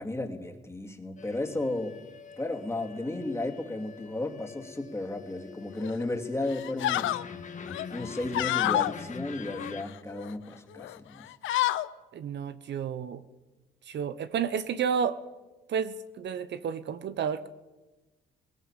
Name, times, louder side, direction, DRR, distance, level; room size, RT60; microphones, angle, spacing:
voice 1, 0.0-2.0 2.4-7.2 7.9-11.3, left 2 dB, 15° left, 3 dB, 2.8 m, -34 dB
sound 1, 1.2-9.8, left 6 dB, 40° left, 1.7 m, -45 dB
sound 2, 5.8-6.1 6.5-7.2 7.7-8.9 9.5-10.3 10.8-11.0 11.2-11.9, left 14 dB, 80° left, 0.8 m, -29 dB
voice 2, 12.1-13.2 13.8-15.2 15.7-17.5, right 7 dB, 60° right, 13 dB, 1.0 m, -31 dB
19.0 x 18.5 x 7.5 m, 1.1 s
cardioid pair, 90°, 20 cm